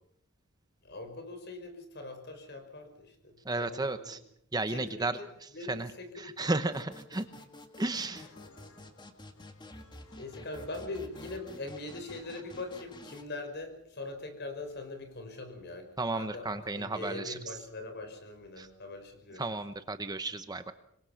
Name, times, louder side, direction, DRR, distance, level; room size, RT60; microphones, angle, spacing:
voice 1, 0.8-4.2 4.7-5.1 5.5-6.5 10.1-19.4, left 2 dB, 50° left, 6 dB, 5.3 m, -42 dB
voice 2, 3.4-4.2 4.5-7.3 7.8-8.3 16.0-17.6 18.6-18.7 19.4-20.7, right 2 dB, 20° right, 10 dB, 0.9 m, -34 dB
sound 1, 6.7-13.2, left 1 dB, 20° left, 1.9 m, -50 dB
sound 2, 7.9-13.3, left 3 dB, 85° left, 4.8 m, -60 dB
26.0 x 22.5 x 5.8 m, 0.72 s
head